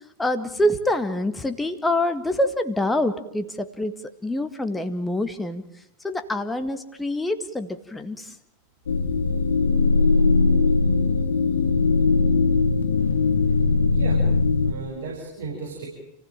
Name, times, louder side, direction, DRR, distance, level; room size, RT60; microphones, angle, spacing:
voice 1, 0.2-5.6 6.0-8.3, left 1 dB, 10° left, 8 dB, 1.8 m, -26 dB
sound 1, 8.9-14.7, left 3 dB, 65° left, 1.3 m, -20 dB
voice 2, 13.9-15.9, right 4 dB, 60° right, -3 dB, 6.9 m, -35 dB
29.5 x 16.0 x 8.9 m, 0.81 s
figure-of-eight pair, 90°, 0 cm